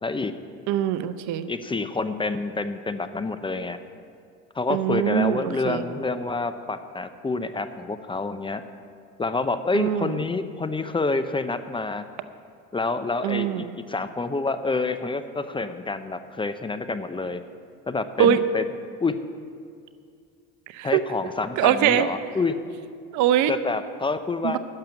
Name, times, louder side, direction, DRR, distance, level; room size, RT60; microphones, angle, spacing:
voice 1, 0.0-0.3 1.5-3.8 4.5-8.6 9.2-12.0 12.7-17.4 17.9-18.7 19.0-19.2 20.8-22.6 23.5-24.6, left 3 dB, 15° left, 10 dB, 0.7 m, -28 dB
voice 2, 0.7-1.5 4.7-5.8 9.7-10.1 13.2-13.8 18.2-18.4 20.7-21.0 21.6-22.1 23.1-23.5 24.4-24.6, right 10 dB, 65° right, 12 dB, 0.8 m, -22 dB
12.0 x 6.8 x 8.8 m, 2.3 s
supercardioid pair, 85°, 31 cm